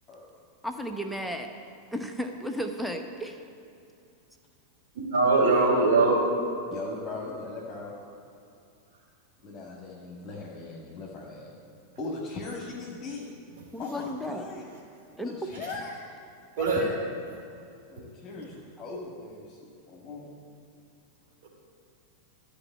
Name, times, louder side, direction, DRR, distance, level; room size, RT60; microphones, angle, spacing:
voice 1, 0.6-1.5 1.9-3.4 13.7-14.5 15.2-15.3, equal, ahead, 4 dB, 0.9 m, -33 dB
voice 2, 5.1-6.2 16.6-16.8 21.4-21.5, right 3 dB, 55° right, -2 dB, 3.0 m, -21 dB
voice 3, 6.7-7.9 9.4-11.6 12.0-13.3 13.8-14.7 15.2-16.0 16.6-17.0 17.9-19.6 19.9-20.3, left 3 dB, 30° left, -3 dB, 1.7 m, -39 dB
12.5 x 5.3 x 8.9 m, 2.5 s
figure-of-eight pair, 90°, 0 cm